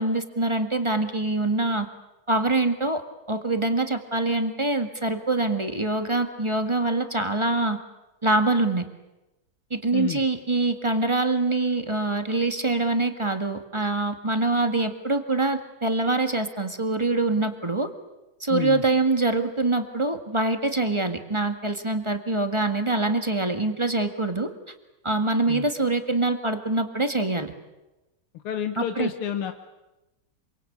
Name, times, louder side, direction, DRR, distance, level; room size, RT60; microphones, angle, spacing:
voice 1, 0.0-1.9 2.3-3.0 3.3-7.8 8.2-8.8 9.7-17.9 18.4-24.5 25.0-27.5 28.8-29.1, right 2 dB, 15° right, 7 dB, 1.6 m, -24 dB
voice 2, 9.9-10.2 18.5-18.8 25.5-25.7 28.3-29.5, left 9 dB, 90° left, 7 dB, 2.1 m, -29 dB
26.5 x 24.5 x 8.7 m, 1.0 s
omnidirectional pair, 2.3 m